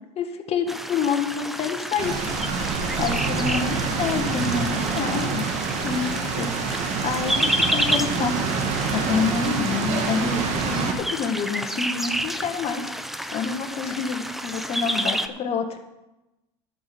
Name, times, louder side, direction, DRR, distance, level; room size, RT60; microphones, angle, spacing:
voice 1, 0.1-5.5 5.8-8.4 8.9-12.9 13.3-15.8, left 5 dB, 45° left, 5 dB, 1.6 m, -28 dB
sound 1, 0.7-15.3, equal, ahead, 0.7 m, -30 dB
sound 2, 2.0-10.9, right 5 dB, 50° right, 2.0 m, -27 dB
11.5 x 6.0 x 7.9 m, 0.99 s
supercardioid pair, 105°, 15 cm